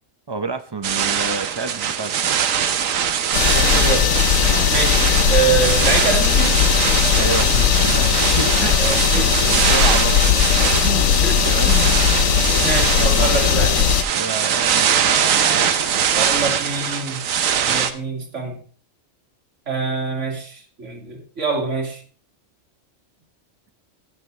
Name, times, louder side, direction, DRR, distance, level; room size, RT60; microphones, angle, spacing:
voice 1, 0.3-2.5 4.4-4.7 7.1-8.8 9.1-11.1 11.5-12.1 12.5-13.5 14.1-16.6, right 4 dB, 25° right, 8 dB, 0.6 m, -30 dB
sound 1, 0.8-17.9, right 8 dB, 85° right, 1.2 m, -22 dB
sound 2, 3.3-14.0, left 8 dB, 80° left, 1.2 m, -18 dB
voice 2, 3.5-4.1 4.7-6.6 8.8-9.5 11.2-11.5 12.6-13.8 16.1-17.2 17.6-18.6 19.7-22.0, right 5 dB, 65° right, 1 dB, 2.4 m, -25 dB
16.0 x 6.9 x 3.2 m, 0.42 s
omnidirectional pair, 1.3 m